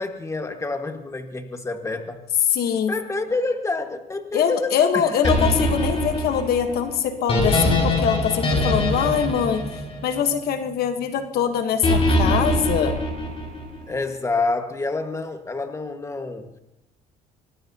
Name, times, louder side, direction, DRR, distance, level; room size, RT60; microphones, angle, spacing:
voice 1, 0.0-2.2 2.9-5.4 13.9-16.6, left 3 dB, 15° left, 6 dB, 1.6 m, -28 dB
voice 2, 2.5-3.0 4.3-9.6 10.0-13.0, left 8 dB, 65° left, 8 dB, 1.3 m, -23 dB
sound 1, 5.2-10.5 11.8-13.8, left 1 dB, 35° left, 5.5 m, -22 dB
24.5 x 18.5 x 2.9 m, 0.92 s
cardioid pair, 110°, 17 cm